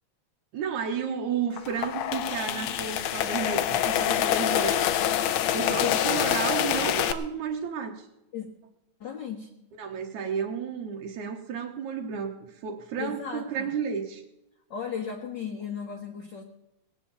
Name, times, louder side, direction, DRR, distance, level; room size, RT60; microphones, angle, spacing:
voice 1, 0.5-4.9 5.5-8.1 9.8-14.2, right 7 dB, 85° right, 2 dB, 2.6 m, -32 dB
sound 1, 1.5-7.1, left 11 dB, 75° left, 2.0 m, -26 dB
voice 2, 5.7-6.0 8.3-8.5 9.0-9.5 13.0-13.8 14.7-16.4, left 7 dB, 45° left, 2 dB, 1.7 m, -35 dB
19.0 x 7.3 x 8.5 m, 0.88 s
omnidirectional pair, 3.3 m